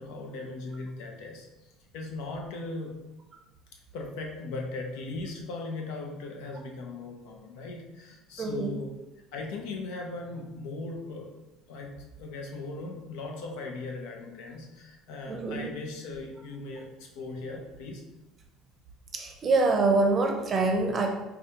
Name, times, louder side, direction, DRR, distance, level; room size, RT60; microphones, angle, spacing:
voice 1, 0.0-1.5 1.9-3.0 3.9-8.9 9.3-11.3 11.7-18.0, left 3 dB, 80° left, 2 dB, 0.7 m, -38 dB
voice 2, 8.4-8.7 15.3-15.7 19.1-21.1, right 3 dB, 30° right, 2 dB, 0.6 m, -25 dB
4.9 x 2.3 x 2.8 m, 1.0 s
cardioid pair, 130°, 0 cm